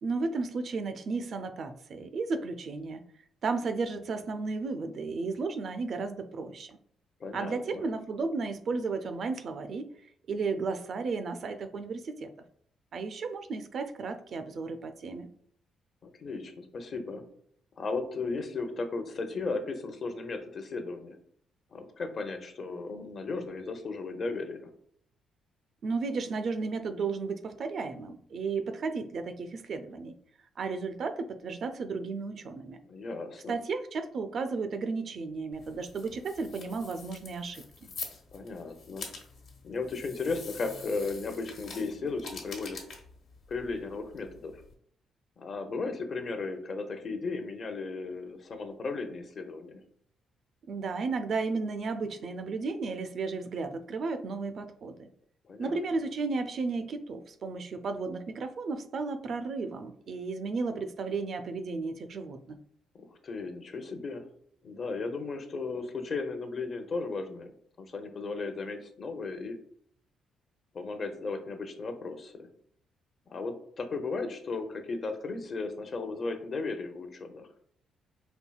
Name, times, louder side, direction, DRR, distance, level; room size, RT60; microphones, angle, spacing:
voice 1, 0.0-3.0 3.4-6.8 7.3-9.9 10.3-12.3 12.9-15.3 25.8-30.2 30.6-32.8 33.5-37.6 50.7-55.1 55.6-62.6, right 4 dB, 55° right, 8 dB, 0.4 m, -34 dB
voice 2, 7.2-7.8 16.0-17.2 17.8-21.2 21.7-24.7 32.8-33.6 38.3-39.1 39.6-42.8 43.5-44.5 45.4-49.8 55.5-55.8 62.9-64.2 64.6-69.6 70.7-72.5 73.3-77.5, left 3 dB, 50° left, 6 dB, 0.6 m, -35 dB
sound 1, 35.5-44.7, left 4 dB, 65° left, 1.0 m, -46 dB
4.4 x 2.7 x 2.3 m, 0.63 s
cardioid pair, 90°, 0 cm